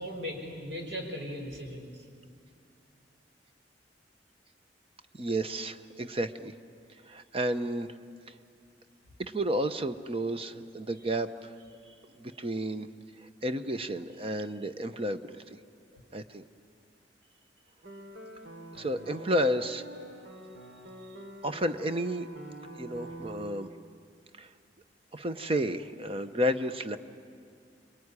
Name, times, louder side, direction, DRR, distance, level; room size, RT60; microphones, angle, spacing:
voice 1, 0.0-2.1, equal, 70° right, 1 dB, 5.6 m, -38 dB
voice 2, 5.2-6.5 7.1-7.9 8.3-8.4 9.2-11.5 12.2-12.9 13.2-15.6 16.1-16.4 18.8-19.9 21.4-22.3 22.8-23.7 24.4-24.5 25.1-27.0, equal, 30° right, 10 dB, 0.9 m, -31 dB
sound 1, 17.8-23.5, right 1 dB, 85° right, 3.2 m, -46 dB
26.5 x 22.5 x 9.8 m, 2.3 s
head